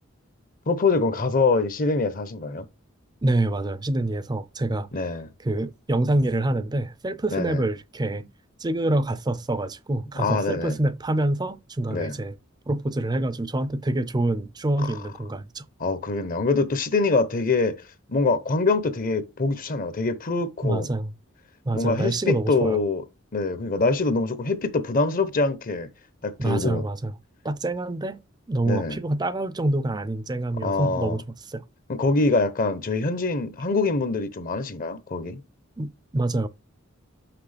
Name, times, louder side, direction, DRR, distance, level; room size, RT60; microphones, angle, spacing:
voice 1, 0.7-2.7 4.9-5.3 7.3-7.6 10.1-10.8 11.9-12.2 15.8-17.7 18.1-20.9 21.7-23.0 23.3-25.9 26.2-26.8 28.6-29.0 30.6-31.2 31.9-35.4, left 3 dB, 45° left, 0.8 m, -24 dB
voice 2, 3.2-4.9 5.4-8.3 8.6-12.3 12.7-15.6 20.6-21.1 21.6-22.8 26.4-27.1 27.4-28.2 28.5-31.6 35.8-36.5, right 2 dB, 20° right, 0.5 m, -26 dB
5.9 x 5.8 x 3.4 m
head